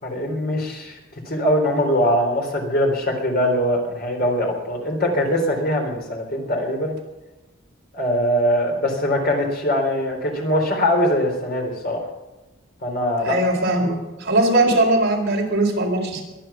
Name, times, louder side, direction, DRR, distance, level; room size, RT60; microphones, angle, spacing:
voice 1, 0.0-1.0 1.3-7.0 7.9-12.0 12.8-13.4, equal, 50° left, 2 dB, 3.9 m, -22 dB
voice 2, 13.2-16.2, right 2 dB, 50° right, 0 dB, 4.4 m, -20 dB
22.5 x 9.0 x 5.8 m, 1.0 s
head